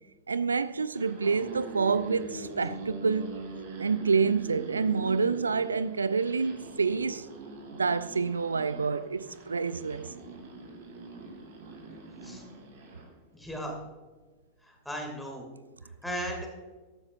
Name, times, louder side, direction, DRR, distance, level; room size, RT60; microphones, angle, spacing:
voice 1, 0.3-3.3 3.8-7.3 7.7-10.1, right 5 dB, 75° right, 0.3 m, -28 dB
sound 1, 0.9-13.1, right 3 dB, 55° right, 2.4 m, -43 dB
voice 2, 13.3-13.8 14.8-15.5 16.0-16.5, equal, ahead, 2.5 m, -36 dB
13.5 x 9.7 x 2.6 m
figure-of-eight pair, 90°, 0 cm